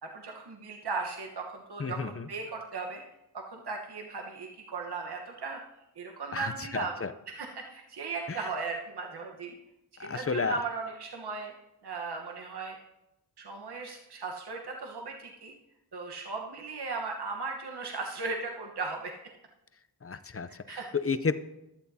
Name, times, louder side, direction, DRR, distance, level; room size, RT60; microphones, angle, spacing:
voice 1, 0.0-3.0 3.3-5.6 6.0-6.9 7.3-9.5 10.0-11.5 11.8-12.8 13.4-15.5 15.9-19.1 20.5-20.9, right 4 dB, 80° right, 1 dB, 1.2 m, -37 dB
voice 2, 1.8-2.3 6.3-7.1 8.3-8.5 10.0-10.6 20.0-21.4, left 5 dB, 35° left, 13 dB, 0.6 m, -32 dB
15.5 x 11.5 x 2.8 m, 0.92 s
wide cardioid pair, 55°, 39 cm